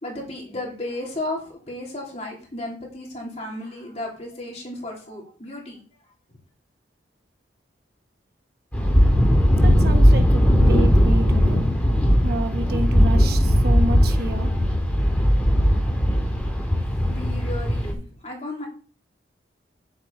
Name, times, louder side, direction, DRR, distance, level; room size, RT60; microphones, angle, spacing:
voice 1, 0.0-5.8 17.1-18.7, left 1 dB, 35° left, 3.3 m, -34 dB
sound 1, 8.7-17.9, equal, 10° left, 2.1 m, -18 dB
voice 2, 9.5-11.7 12.2-14.5, right 1 dB, 55° right, 1.2 m, -29 dB
9.9 x 7.8 x 4.1 m
head